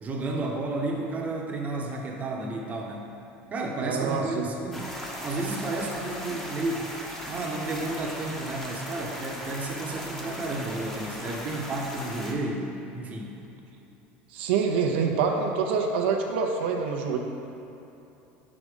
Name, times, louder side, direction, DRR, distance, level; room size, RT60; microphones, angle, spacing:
voice 1, 0.0-3.1 3.5-4.9 5.2-6.9 7.3-13.4, right 2 dB, 25° right, 0 dB, 0.8 m, -32 dB
voice 2, 3.8-4.5 14.3-17.2, right 5 dB, 90° right, 2 dB, 0.6 m, -26 dB
sound 1, 4.7-12.3, equal, 5° left, 0.8 m, -38 dB
5.2 x 4.9 x 5.0 m, 2.9 s
supercardioid pair, 125°, 6 cm